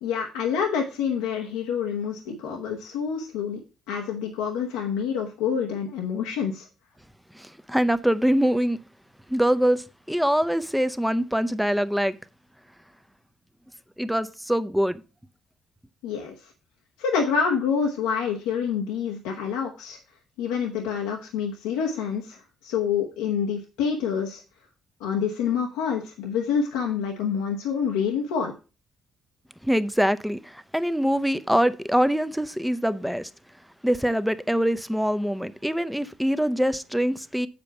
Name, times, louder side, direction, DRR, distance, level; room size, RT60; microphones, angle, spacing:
voice 1, 0.0-6.7 16.0-16.5 17.0-20.0 20.4-24.4 25.0-28.5, left 6 dB, 90° left, 0.9 m, -27 dB
voice 2, 7.3-8.8 9.3-12.2 14.0-15.0 29.6-33.3 33.8-37.5, equal, ahead, 0.7 m, -24 dB
6.9 x 5.2 x 5.8 m
supercardioid pair, 60°, 0 cm